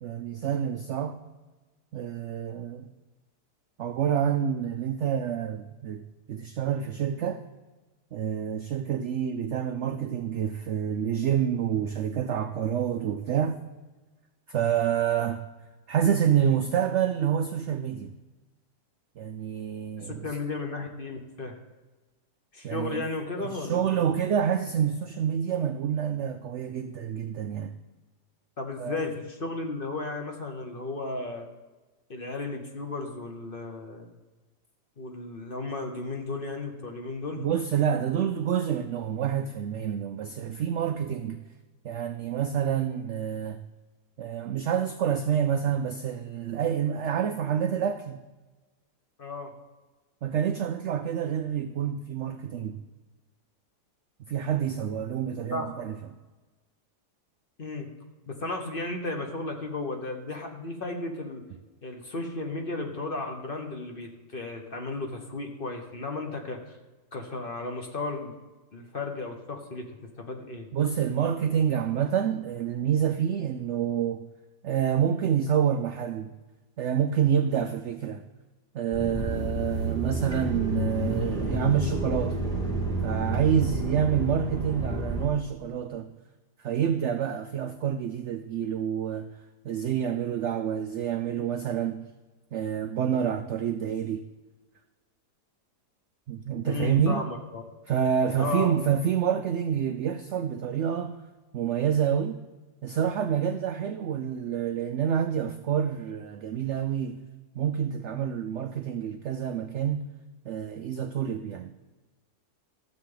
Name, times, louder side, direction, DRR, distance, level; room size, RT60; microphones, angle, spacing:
voice 1, 0.0-1.2 1.9-2.9 3.8-6.0 6.3-7.4 8.1-13.6 14.5-15.5 15.9-18.1 19.2-20.3 22.6-23.0 23.4-27.7 28.8-29.0 37.4-41.4 41.8-43.6 44.2-48.2 50.2-52.8 54.3-56.0 70.7-74.3 74.6-76.3 76.8-78.2 78.7-82.4 83.0-86.1 86.6-89.3 89.6-92.1 92.5-94.3 96.3-97.2 97.9-101.2 101.5-102.4 102.8-107.2 107.5-110.1 110.4-111.7, right 8 dB, 75° right, 0.6 m, -28 dB
voice 2, 20.0-21.6 22.5-23.9 28.6-31.5 32.1-34.1 35.0-37.5 49.2-49.5 55.5-55.7 57.6-57.9 58.3-61.4 61.8-66.6 67.1-68.3 68.7-70.7 96.6-97.6 98.4-98.7, left 3 dB, 35° left, 1.1 m, -34 dB
sound 1, 78.9-85.3, right 1 dB, ahead, 1.9 m, -30 dB
13.0 x 7.4 x 3.8 m
omnidirectional pair, 1.8 m